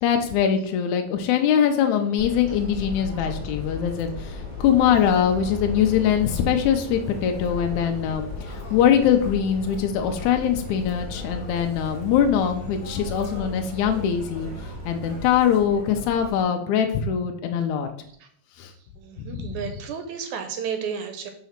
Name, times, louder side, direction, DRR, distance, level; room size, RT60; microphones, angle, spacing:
voice 1, 0.0-14.5 14.9-17.9 18.6-18.7 19.2-19.6, left 8 dB, 75° left, 4 dB, 1.8 m, -22 dB
sound 1, 1.2-15.2, right 3 dB, 35° left, 1.0 m, -43 dB
Subway metro underground, 2.2-16.4, left 4 dB, 5° left, 1.4 m, -36 dB
voice 2, 19.0-21.3, right 7 dB, 80° right, 7 dB, 1.9 m, -32 dB
5.6 x 4.1 x 5.8 m, 0.67 s
omnidirectional pair, 3.8 m